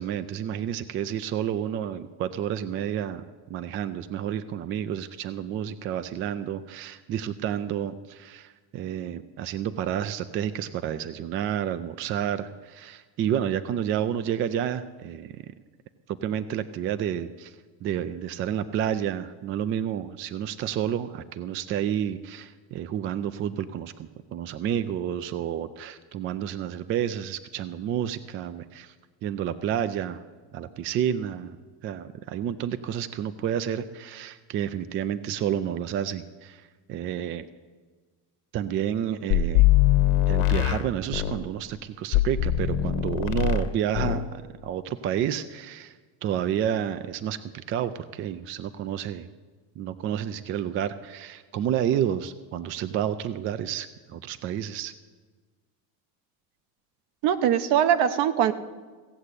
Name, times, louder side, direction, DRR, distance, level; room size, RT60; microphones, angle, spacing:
voice 1, 0.0-15.3 16.1-17.5 17.8-28.9 29.2-30.2 30.5-31.6 31.8-37.5 38.5-39.7 40.3-45.9 46.2-49.3 49.8-54.9, right 10 dB, 30° right, 13 dB, 0.4 m, -30 dB
sound 1, 39.3-41.4 42.1-43.7 43.9-44.3, left 13 dB, 70° left, 1.6 m, -22 dB
voice 2, 57.2-58.5, right 10 dB, 60° right, 11 dB, 1.0 m, -21 dB
16.0 x 7.6 x 8.2 m, 1.4 s
cardioid pair, 140°, 44 cm